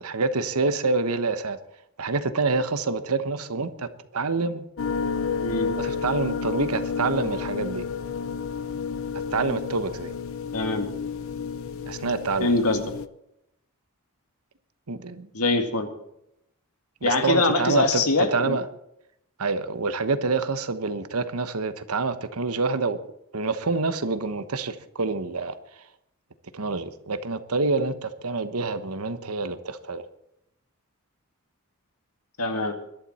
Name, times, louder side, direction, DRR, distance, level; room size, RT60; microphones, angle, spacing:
voice 1, 0.0-1.6 2.0-4.7 5.8-7.8 9.3-10.1 11.8-12.5 14.9-15.3 17.0-18.6 19.4-23.0 23.3-25.6 26.5-30.0, right 3 dB, 90° right, 11 dB, 1.1 m, -27 dB
sound 1, 4.8-13.1, left 6 dB, 65° left, 0.7 m, -31 dB
voice 2, 5.4-5.7 10.5-10.9 12.4-12.8 15.3-15.9 17.0-18.6 32.4-32.7, left 2 dB, 90° left, 6 dB, 2.1 m, -23 dB
21.5 x 11.5 x 4.3 m, 0.80 s
head